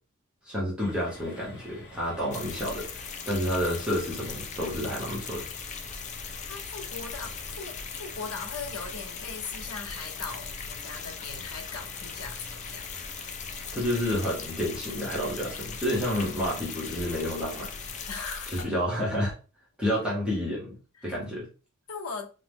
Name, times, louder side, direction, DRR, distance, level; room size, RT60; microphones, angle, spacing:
voice 1, 0.5-2.9 3.2-5.4 13.7-17.7 18.5-19.3 19.8-20.7 21.0-21.5, equal, 5° right, 0.9 m, -29 dB
sound 1, 0.8-18.1, left 2 dB, 55° left, 1.0 m, -48 dB
sound 2, 2.3-18.7, left 6 dB, 35° left, 0.3 m, -39 dB
voice 2, 6.1-12.8 18.1-18.7 21.0-21.2 21.9-22.3, left 4 dB, 80° left, 0.7 m, -39 dB
2.8 x 2.1 x 3.4 m
head